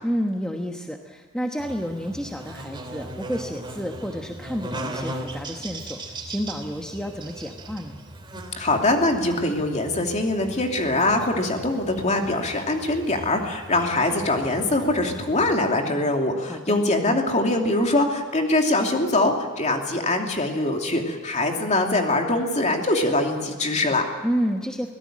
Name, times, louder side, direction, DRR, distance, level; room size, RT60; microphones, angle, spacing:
voice 1, 0.0-8.0 16.5-16.8 24.2-24.9, equal, 5° left, 2 dB, 1.2 m, -30 dB
Buzz, 1.6-15.6, right 1 dB, 20° right, 2.8 m, -39 dB
voice 2, 8.6-24.0, left 2 dB, 35° left, 2 dB, 2.8 m, -23 dB
24.0 x 17.5 x 7.5 m, 1.4 s
head